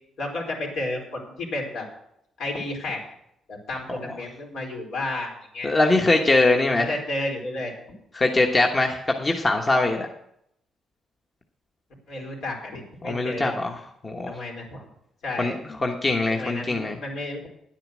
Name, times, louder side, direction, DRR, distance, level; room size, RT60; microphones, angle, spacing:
voice 1, 0.2-1.9 2.4-3.0 3.5-5.7 6.8-7.7 12.1-13.5 14.3-14.9 15.2-15.6 16.3-17.5, left 2 dB, 75° left, -1 dB, 4.4 m, -32 dB
voice 2, 5.6-6.9 8.1-10.1 13.0-14.3 15.4-17.0, left 2 dB, 25° left, 2 dB, 1.2 m, -22 dB
10.5 x 8.9 x 6.3 m, 0.74 s
cardioid pair, 90°, 0 cm